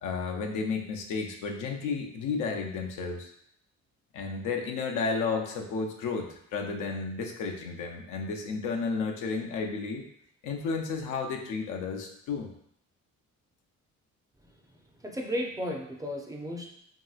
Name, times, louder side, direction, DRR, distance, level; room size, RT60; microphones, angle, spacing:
voice 1, 0.0-3.3 4.1-10.0 10.4-12.5, left 4 dB, 85° left, 2 dB, 0.6 m, -32 dB
voice 2, 14.9-16.7, equal, 10° right, 0 dB, 0.5 m, -34 dB
3.0 x 2.8 x 2.3 m, 0.70 s
cardioid pair, 90°, 30 cm